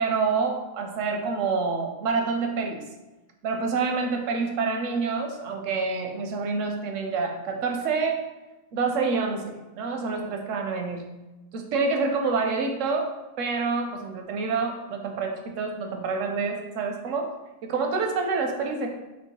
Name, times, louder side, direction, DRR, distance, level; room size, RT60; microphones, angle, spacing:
voice 1, 0.0-2.8 3.4-8.2 8.7-11.1 11.5-13.1 13.4-17.3 17.6-18.9, right 4 dB, 85° right, 3 dB, 1.0 m, -27 dB
3.1 x 3.0 x 4.5 m, 1.1 s
omnidirectional pair, 1.3 m